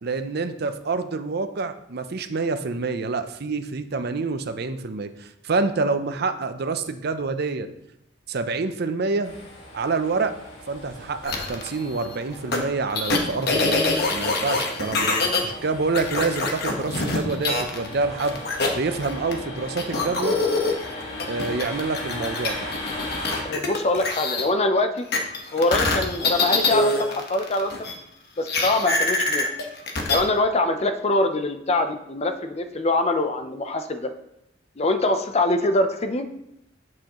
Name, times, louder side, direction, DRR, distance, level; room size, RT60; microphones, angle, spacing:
voice 1, 0.0-7.7 8.3-9.3 9.7-10.3 10.7-13.8 14.1-15.2 15.4-18.4 18.7-20.4 21.3-22.7, right 4 dB, 55° right, 9 dB, 0.6 m, -27 dB
sound 1, 9.2-23.4, left 1 dB, 75° left, 2.4 m, -37 dB
sound 2, 11.2-11.7 12.5-12.6 12.9-15.4 15.9-17.9 18.2-19.3 19.8-24.4 25.1-27.9 28.5-30.2, left 3 dB, 55° left, 1.2 m, -24 dB
voice 2, 23.4-25.1 25.5-27.9 28.4-29.5 30.1-34.1 34.8-36.3, left 2 dB, 35° left, 8 dB, 0.6 m, -23 dB
8.8 x 7.5 x 3.0 m, 0.82 s
head